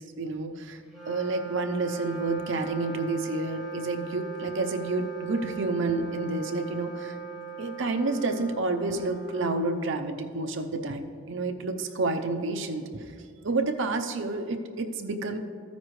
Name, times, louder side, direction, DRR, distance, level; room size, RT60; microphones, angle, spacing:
voice 1, 0.0-7.2 7.6-13.1 13.4-15.4, right 3 dB, 60° right, 6 dB, 0.6 m, -29 dB
Wind instrument woodwind instrument, 0.8-10.4, right 7 dB, ahead, 2.5 m, -40 dB
13.5 x 9.4 x 3.2 m, 2.2 s
head